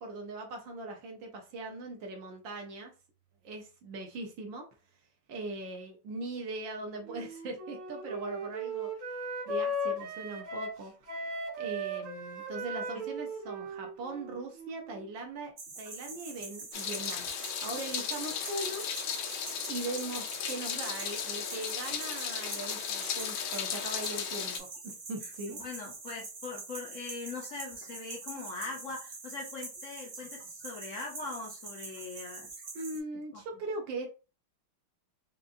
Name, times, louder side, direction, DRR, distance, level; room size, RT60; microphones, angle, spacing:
voice 1, 0.0-2.9 3.4-4.7 5.3-10.9 11.6-18.9 19.7-25.6 32.7-34.1, right 2 dB, 70° right, 2 dB, 1.5 m, -40 dB
Wind instrument woodwind instrument, 7.1-15.1, right 1 dB, 90° right, 2.3 m, -37 dB
sound 1, 15.6-33.0, right 3 dB, 45° right, 1.1 m, -45 dB
Meow, 16.7-24.6, left 8 dB, 80° left, 1.4 m, -36 dB
voice 2, 25.5-32.5 33.3-33.4, left 3 dB, 60° left, -1 dB, 0.8 m, -41 dB
5.2 x 2.4 x 2.5 m, 0.32 s
omnidirectional pair, 2.2 m